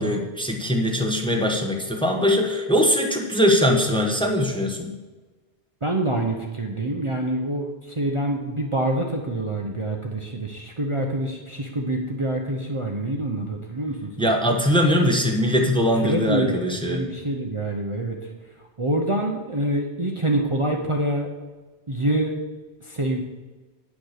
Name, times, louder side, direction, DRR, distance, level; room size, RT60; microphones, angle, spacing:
voice 1, 0.0-4.9 14.2-17.0, equal, 5° left, 2 dB, 1.1 m, -21 dB
voice 2, 5.8-14.3 16.0-18.2 18.6-21.3 21.9-22.4 22.8-23.2, right 1 dB, 30° right, 1 dB, 0.9 m, -26 dB
9.3 x 6.6 x 6.6 m, 1.2 s
omnidirectional pair, 1.1 m